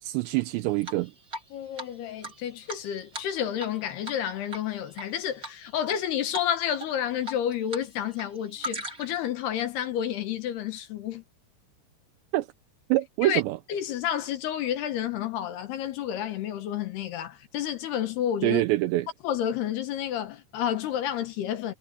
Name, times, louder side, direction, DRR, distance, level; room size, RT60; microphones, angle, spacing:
voice 1, 0.0-1.1 12.3-12.5 12.9-13.6 18.4-19.1, right 17 dB, 80° right, 2.8 m, -25 dB
Drip, 0.8-1.5 1.8-1.9 2.2-3.8 4.0-4.2 4.5-5.1 5.4-6.0 6.3-6.5 6.8-7.8 8.1-9.2, right 1 dB, 20° right, 3.2 m, -38 dB
voice 2, 1.5-11.2 13.2-13.4 13.7-18.6 19.2-21.7, left 10 dB, 65° left, 3.0 m, -30 dB
omnidirectional pair, 5.6 m